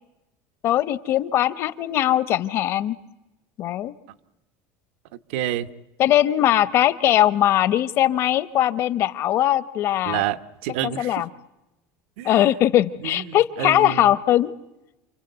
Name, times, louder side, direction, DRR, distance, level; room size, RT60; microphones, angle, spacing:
voice 1, 0.6-3.0 3.6-3.9 6.0-10.2 10.8-11.3 12.2-14.5, left 12 dB, 45° left, 15 dB, 0.9 m, -20 dB
voice 2, 5.3-5.7 10.1-11.2 12.2-12.5 13.0-14.1, right 12 dB, 90° right, 10 dB, 1.1 m, -29 dB
28.5 x 25.0 x 8.1 m, 0.99 s
cardioid pair, 160°, 6 cm